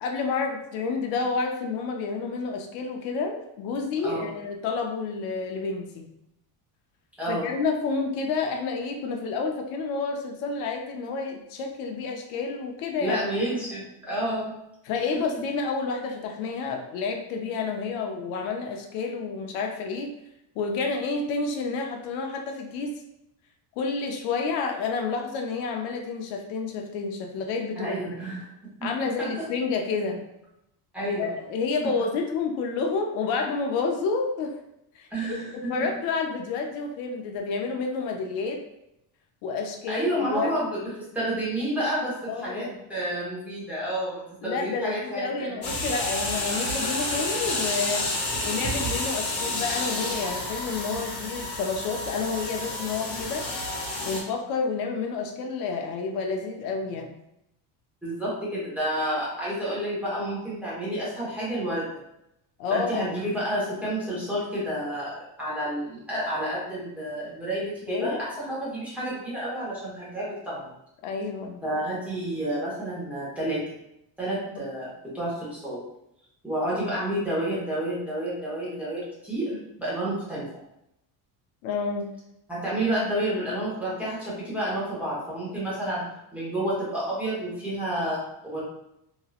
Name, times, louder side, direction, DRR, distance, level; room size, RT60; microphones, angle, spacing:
voice 1, 0.0-6.1 7.3-13.2 14.9-20.1 20.6-22.9 23.8-28.0 28.8-30.2 31.2-34.5 34.9-38.6 39.4-40.5 42.3-42.8 44.4-48.1 48.4-53.5 54.0-57.1 62.6-63.1 67.9-68.2 71.0-71.6 74.5-74.6 81.6-82.1, left 4 dB, 85° left, 3 dB, 0.7 m, -29 dB
voice 2, 13.0-14.5 27.8-28.5 28.8-28.9 29.2-29.5 30.9-31.3 31.8-31.9 35.1-35.7 39.9-45.6 58.0-61.9 62.7-70.7 71.6-73.6 74.2-75.8 76.4-80.5 82.5-88.6, right 1 dB, 5° right, -8 dB, 1.0 m, -30 dB
sound 1, 45.6-54.2, left 2 dB, 50° left, 1.0 m, -30 dB
2.9 x 2.7 x 2.4 m, 0.82 s
cardioid pair, 155°, 44 cm